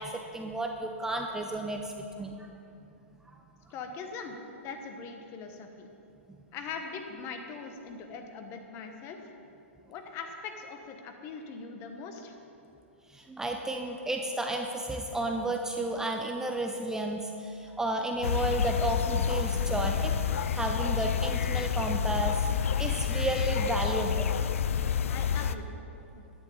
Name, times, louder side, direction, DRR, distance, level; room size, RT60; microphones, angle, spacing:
voice 1, 0.0-2.5 13.1-20.1 20.5-22.4 22.8-24.3, right 2 dB, 5° right, 3 dB, 0.5 m, -32 dB
voice 2, 3.7-5.9 6.5-9.2 9.9-12.4 25.1-25.7 26.1-26.2, left 5 dB, 35° left, 5 dB, 1.1 m, -41 dB
sound 1, 18.2-25.6, left 8 dB, 75° left, 0.4 m, -29 dB
10.5 x 9.0 x 3.9 m, 2.8 s
hypercardioid pair, 115°, 7 cm